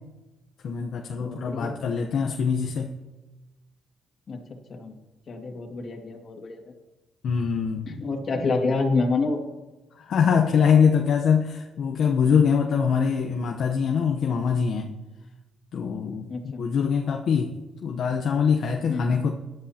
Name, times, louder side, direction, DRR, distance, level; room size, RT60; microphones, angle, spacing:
voice 1, 0.6-2.9 7.2-7.9 10.0-14.9 15.7-17.5 17.8-19.3, left 6 dB, 65° left, 2 dB, 0.9 m, -23 dB
voice 2, 1.2-1.8 4.3-4.4 4.7-5.0 5.3-6.6 7.9-9.4 16.3-16.6 18.9-19.1, left 3 dB, 50° left, 2 dB, 2.1 m, -27 dB
18.0 x 11.0 x 2.9 m, 1.1 s
cardioid pair, 90°, 0 cm